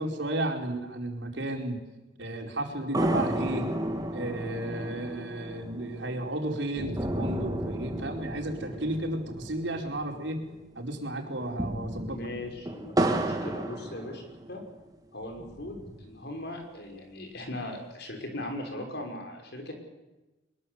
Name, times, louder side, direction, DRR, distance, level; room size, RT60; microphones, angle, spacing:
voice 1, 0.0-1.8 2.2-3.7 4.1-10.4 10.7-12.1, right 1 dB, 85° right, 2 dB, 4.8 m, -33 dB
sound 1, 2.9-10.5 10.8-10.9 11.4-14.7 15.2-16.2, right 1 dB, 20° right, 2.5 m, -33 dB
voice 2, 12.0-14.2 14.5-14.6 15.1-19.7, left 1 dB, 65° left, 4 dB, 5.9 m, -39 dB
23.0 x 22.0 x 8.1 m, 1.1 s
head